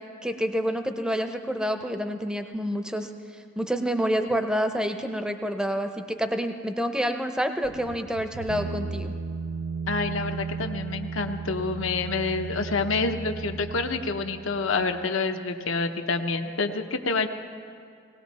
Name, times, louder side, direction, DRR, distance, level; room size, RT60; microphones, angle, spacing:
voice 1, 0.2-3.1 3.6-9.1, equal, 5° right, 7 dB, 0.6 m, -28 dB
sound 1, 7.6-15.1, right 4 dB, 65° right, 0.5 m, -35 dB
voice 2, 9.9-17.3, left 4 dB, 70° left, 6 dB, 0.8 m, -28 dB
19.0 x 18.0 x 4.1 m, 2.3 s
head